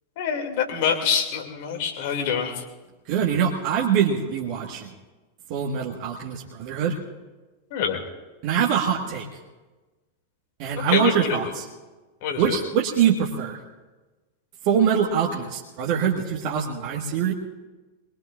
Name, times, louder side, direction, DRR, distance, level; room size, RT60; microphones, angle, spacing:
voice 1, 0.2-2.6 7.7-8.0 10.8-11.3 12.2-12.5, left 7 dB, 50° left, 3 dB, 2.5 m, -25 dB
voice 2, 3.1-4.9 5.5-7.0 8.4-9.3 10.6-11.7 12.4-13.6 14.6-17.3, right 8 dB, 45° right, -1 dB, 1.6 m, -23 dB
22.5 x 22.0 x 2.5 m, 1.2 s
figure-of-eight pair, 90°, 0 cm